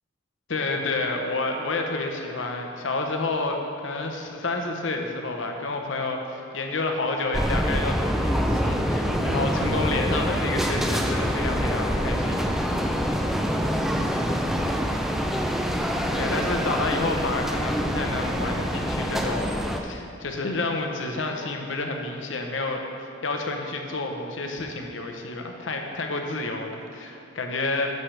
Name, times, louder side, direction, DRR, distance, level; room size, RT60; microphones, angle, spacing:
voice 1, 0.5-12.5 16.1-28.0, left 2 dB, 75° left, 3 dB, 0.9 m, -29 dB
sound 1, 7.3-19.8, equal, ahead, 0.4 m, -25 dB
12.0 x 6.6 x 3.3 m, 2.7 s
head